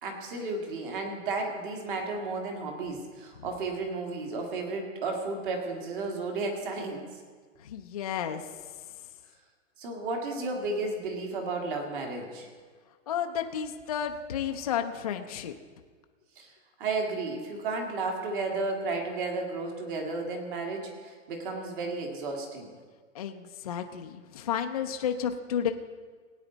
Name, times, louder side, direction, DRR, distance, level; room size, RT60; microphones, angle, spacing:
voice 1, 0.0-7.1 9.8-12.5 16.4-16.5 16.8-22.7, right 3 dB, 40° right, 2 dB, 2.1 m, -33 dB
voice 2, 7.6-8.5 13.1-15.5 23.1-25.7, left 8 dB, 30° left, 5 dB, 0.4 m, -32 dB
17.5 x 9.2 x 3.9 m, 1.5 s
hypercardioid pair, 165°, 38 cm